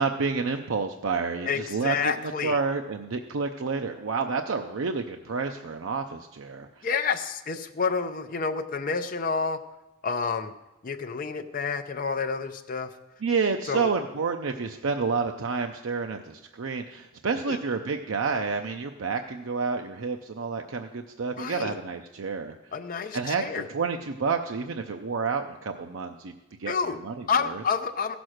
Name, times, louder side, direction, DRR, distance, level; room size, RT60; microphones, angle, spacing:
voice 1, 0.0-2.1 2.4-6.9 13.2-22.6 23.1-26.3 26.6-26.7 27.0-27.6, right 4 dB, 75° right, 5 dB, 0.6 m, -29 dB
voice 2, 1.5-2.6 6.8-9.6 10.0-10.5 10.8-12.9 13.7-13.9 17.5-17.6 21.4-21.8 22.7-23.7 26.7-27.0 27.3-28.1, left 5 dB, 45° left, 6 dB, 0.5 m, -29 dB
15.0 x 6.1 x 6.4 m, 0.99 s
head